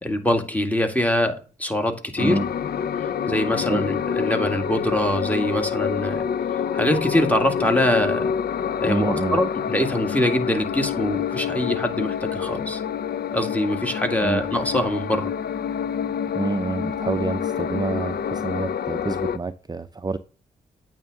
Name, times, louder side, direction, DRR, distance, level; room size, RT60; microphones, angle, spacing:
voice 1, 0.0-2.4 3.3-6.3 6.7-8.3 8.8-12.8 13.3-15.3, left 1 dB, 10° left, 2.1 m, -23 dB
sound 1, 2.2-19.4, left 7 dB, 55° left, 0.6 m, -27 dB
voice 2, 8.9-9.4 14.2-14.4 16.3-20.2, right 3 dB, 20° right, 0.6 m, -27 dB
8.7 x 3.6 x 6.6 m
supercardioid pair, 40°, 19 cm